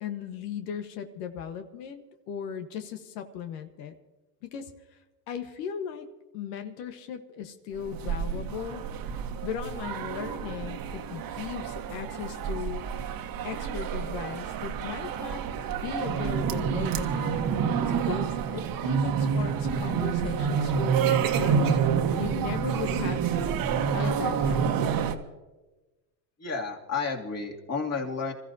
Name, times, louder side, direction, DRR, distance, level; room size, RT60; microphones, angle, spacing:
voice 1, 0.0-3.9 4.5-4.7 5.3-6.1 6.3-8.8 9.4-12.8 13.4-15.4 15.8-17.3 17.9-21.8 22.2-23.3 23.9-24.9, left 8 dB, 75° left, 7 dB, 1.5 m, -37 dB
sound 1, 7.8-25.1, right 7 dB, 45° right, 1.5 m, -28 dB
voice 2, 26.4-28.3, left 4 dB, 30° left, 0 dB, 2.8 m, -31 dB
27.0 x 14.5 x 2.8 m, 1.1 s
supercardioid pair, 105°, 49 cm